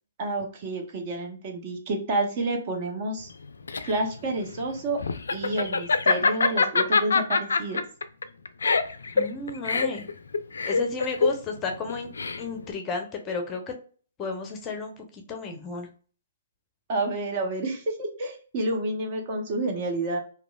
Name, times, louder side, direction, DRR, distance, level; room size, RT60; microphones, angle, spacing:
voice 1, 0.2-3.3 3.8-5.0 5.3-7.8 16.9-20.2, right 2 dB, 40° right, 2 dB, 0.7 m, -29 dB
Laughter, 3.3-12.7, left 4 dB, 70° left, 0.3 m, -25 dB
voice 2, 9.1-10.0 10.7-12.1 12.4-13.6 14.2-15.9, left 4 dB, 20° left, 4 dB, 0.6 m, -32 dB
2.9 x 2.4 x 2.2 m, 0.40 s
figure-of-eight pair, 125°, 0 cm